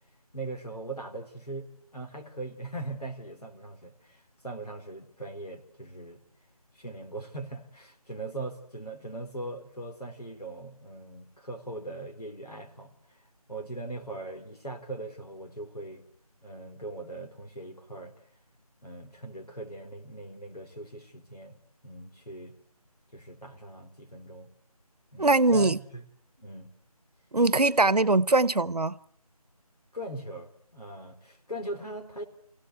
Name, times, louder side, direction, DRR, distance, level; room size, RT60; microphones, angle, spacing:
voice 1, 0.3-6.2 6.8-13.2 13.5-16.0 16.4-18.1 18.8-21.6 21.8-22.5 23.1-24.5 25.1-26.0 26.4-26.7 29.9-32.2, right 2 dB, 90° left, 4.3 m, -40 dB
voice 2, 25.2-25.8 27.3-29.0, right 2 dB, 85° right, 1.0 m, -22 dB
24.5 x 17.0 x 8.1 m
figure-of-eight pair, 165°, 20 cm